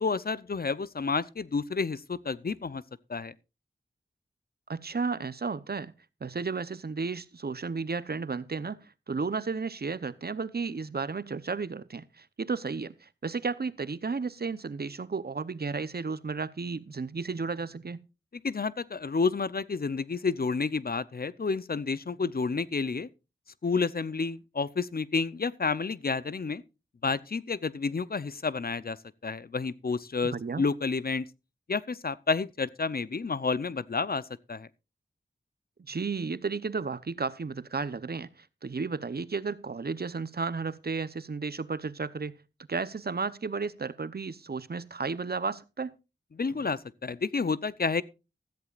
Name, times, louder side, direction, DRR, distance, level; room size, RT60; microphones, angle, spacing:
voice 1, 0.0-2.8 3.1-3.3 18.4-23.1 23.6-26.6 27.0-29.0 29.2-31.2 31.7-34.7 46.3-48.0, left 4 dB, 50° left, 0.7 m, -30 dB
voice 2, 4.7-5.9 6.2-18.0 30.2-30.6 35.9-42.4 42.7-45.9, right 4 dB, 50° right, 0.8 m, -33 dB
15.5 x 14.0 x 2.5 m
wide cardioid pair, 60°, 20 cm